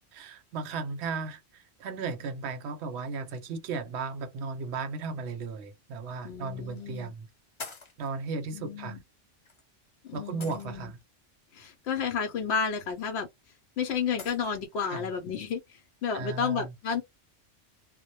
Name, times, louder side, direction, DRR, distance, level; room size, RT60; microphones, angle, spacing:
voice 1, 0.1-7.3 8.0-9.0 10.1-11.0 14.9-15.0 16.1-16.7, right 4 dB, 65° right, 0.8 m, -35 dB
sound 1, 5.6-5.7 6.8-7.0 7.6-8.1 9.4-9.6 10.4-11.0 13.0-13.1 14.2-14.5, left 4 dB, 40° left, 0.4 m, -44 dB
voice 2, 6.2-7.1 8.5-9.0 10.1-10.9 11.5-13.3 13.8-17.0, left 6 dB, 65° left, 0.8 m, -32 dB
2.1 x 2.1 x 2.8 m
omnidirectional pair, 1.3 m